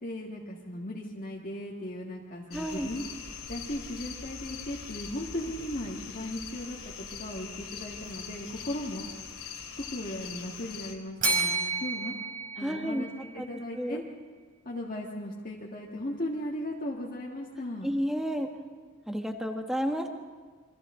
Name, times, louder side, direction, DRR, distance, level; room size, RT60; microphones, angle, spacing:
voice 1, 0.0-3.0 3.5-9.1 9.8-12.1 12.6-14.0 14.6-17.9, left 1 dB, 40° left, -4 dB, 1.8 m, -37 dB
sound 1, 2.5-10.9, left 6 dB, 75° left, 2.5 m, -42 dB
voice 2, 2.5-2.9 12.6-13.1 13.4-13.5 13.8-14.0 17.8-18.5 19.1-20.1, equal, ahead, 3 dB, 1.4 m, -31 dB
Bell, 11.2-13.4, right 3 dB, 40° right, 4.5 m, -31 dB
28.0 x 24.0 x 3.8 m, 1.5 s
head